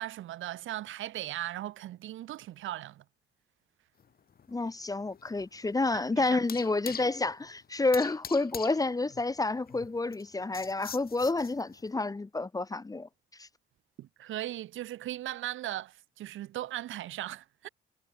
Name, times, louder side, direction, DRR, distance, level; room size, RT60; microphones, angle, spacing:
voice 1, 0.0-3.0 5.9-6.4 14.0-17.7, right 14 dB, 85° right, 3.2 m, -38 dB
sound 1, 4.0-11.9, left 7 dB, 50° left, 3.5 m, -45 dB
voice 2, 4.5-13.1 13.4-13.5, left 3 dB, 20° left, 1.0 m, -29 dB
cardioid pair, 90°, 20 cm